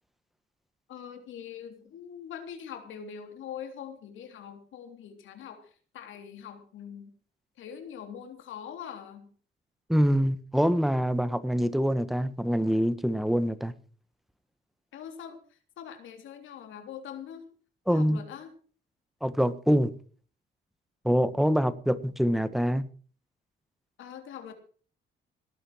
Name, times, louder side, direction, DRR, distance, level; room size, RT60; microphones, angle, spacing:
voice 1, 0.9-5.6 5.9-7.1 7.6-9.3 14.9-15.4 15.8-17.5 17.9-18.5 24.0-24.5, left 8 dB, 80° left, 3.5 m, -43 dB
voice 2, 9.9-13.7 17.9-18.2 19.2-19.9 21.0-22.8, equal, ahead, 1.4 m, -25 dB
19.0 x 8.9 x 6.3 m
cardioid pair, 90°, 20 cm